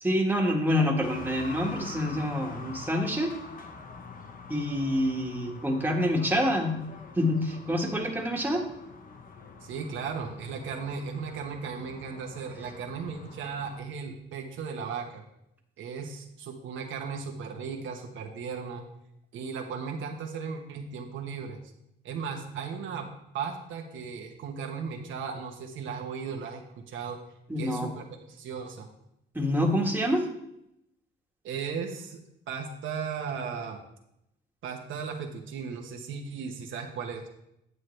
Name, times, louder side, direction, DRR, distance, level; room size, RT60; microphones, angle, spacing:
voice 1, 0.0-3.3 4.5-6.8 7.1-8.7 27.5-27.9 29.3-30.3, equal, 10° right, 0 dB, 1.6 m, -27 dB
sound 1, 1.0-13.8, left 4 dB, 45° left, 1.0 m, -45 dB
voice 2, 9.6-15.2 15.8-18.8 19.3-21.6 22.0-27.2 27.6-28.9 31.4-32.2 32.5-33.8 34.6-37.3, right 6 dB, 75° right, 2 dB, 1.2 m, -36 dB
9.5 x 7.6 x 3.3 m, 0.79 s
cardioid pair, 90°, 20 cm